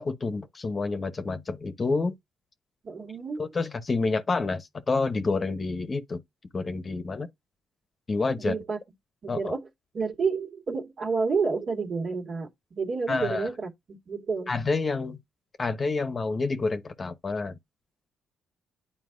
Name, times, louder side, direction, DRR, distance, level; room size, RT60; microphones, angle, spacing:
voice 1, 0.0-2.1 3.4-6.2 6.5-7.3 8.1-8.5 9.3-9.5 13.1-13.5 14.5-15.2 15.6-17.6, left 3 dB, 35° left, 0.9 m, -28 dB
voice 2, 2.8-3.4 8.4-8.8 9.2-9.6 9.9-14.5, right 4 dB, 50° right, 1.9 m, -30 dB
9.5 x 4.3 x 2.6 m
cardioid pair, 90°, 0 cm